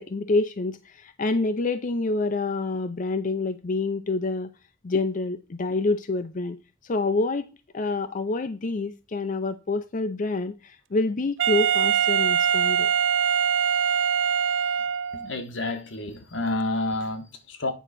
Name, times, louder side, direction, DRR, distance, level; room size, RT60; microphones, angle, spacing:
voice 1, 0.0-4.5 4.8-6.6 6.8-7.5 7.7-12.9, left 3 dB, 45° left, 0.5 m, -27 dB
Wind instrument woodwind instrument, 11.4-15.3, right 8 dB, 70° right, 0.4 m, -23 dB
voice 2, 15.1-17.7, left 2 dB, 85° left, 1.5 m, -29 dB
9.2 x 3.9 x 5.9 m
head